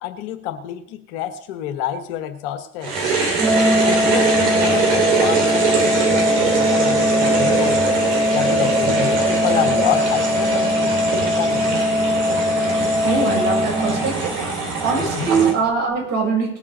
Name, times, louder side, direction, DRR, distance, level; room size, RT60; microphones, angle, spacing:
voice 1, 0.0-2.9 3.8-7.9 8.3-11.8 15.0-15.6, left 10 dB, 60° left, 8 dB, 1.3 m, -28 dB
sound 1, 2.8-15.5, right 5 dB, 70° right, 3.4 m, -22 dB
Organ, 3.4-14.4, left 1 dB, 5° right, 0.6 m, -20 dB
voice 2, 13.0-14.3 14.8-16.6, right 5 dB, 50° right, -2 dB, 7.0 m, -22 dB
19.0 x 7.4 x 5.5 m, 0.69 s
figure-of-eight pair, 60°, 36 cm